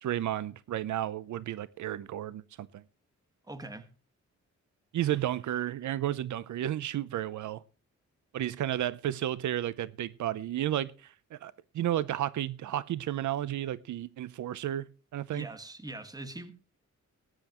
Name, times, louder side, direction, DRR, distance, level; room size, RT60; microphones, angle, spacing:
voice 1, 0.0-2.8 4.9-7.6 8.3-15.5, right 12 dB, 85° right, 0.7 m, -32 dB
voice 2, 3.5-3.9 15.3-16.5, right 2 dB, 15° right, 1.7 m, -42 dB
19.0 x 10.0 x 3.0 m
wide cardioid pair, 125°, 29 cm